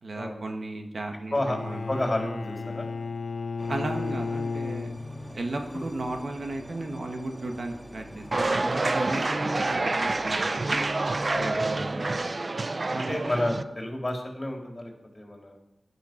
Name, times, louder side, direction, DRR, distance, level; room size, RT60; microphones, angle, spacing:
voice 1, 0.0-1.8 3.7-4.9 5.3-10.8 11.4-12.1 12.9-13.5, right 2 dB, 65° right, 4 dB, 1.7 m, -35 dB
Bowed string instrument, 1.3-5.4, left 4 dB, 65° left, 0.7 m, -33 dB
voice 2, 1.9-2.9 5.7-5.9 11.3-11.7 12.9-15.6, left 1 dB, 25° left, 2 dB, 3.4 m, -31 dB
sound 1, 3.6-12.3, equal, 10° right, 2.0 m, -46 dB
sound 2, 8.3-13.6, right 2 dB, 45° right, 0.7 m, -27 dB
16.0 x 12.0 x 6.0 m, 0.89 s
wide cardioid pair, 90°, 0 cm